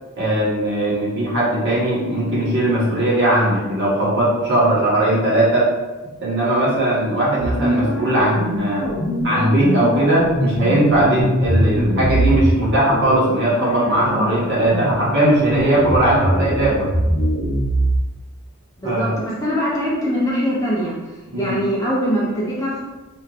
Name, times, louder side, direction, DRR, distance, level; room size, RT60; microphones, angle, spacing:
voice 1, 0.2-5.7 6.2-8.9 9.2-16.9 18.8-19.1 21.3-21.6, right 1 dB, 50° right, -7 dB, 1.4 m, -18 dB
sound 1, 7.4-12.5 12.9-13.1 13.6-18.0, equal, 60° left, 0.9 m, -22 dB
voice 2, 18.8-20.9 21.3-22.8, equal, 15° left, -7 dB, 0.8 m, -22 dB
5.6 x 3.0 x 2.5 m, 1.2 s
head